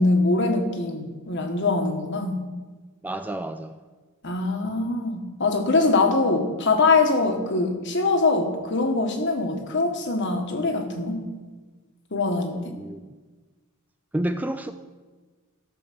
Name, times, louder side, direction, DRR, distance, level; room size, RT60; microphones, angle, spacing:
voice 1, 0.0-2.4 4.2-11.2 12.1-12.6, left 3 dB, 55° left, 5 dB, 1.5 m, -23 dB
voice 2, 3.0-3.7 12.5-13.2 14.1-14.7, right 1 dB, 10° right, 8 dB, 0.4 m, -30 dB
14.0 x 6.9 x 6.1 m, 1.3 s
head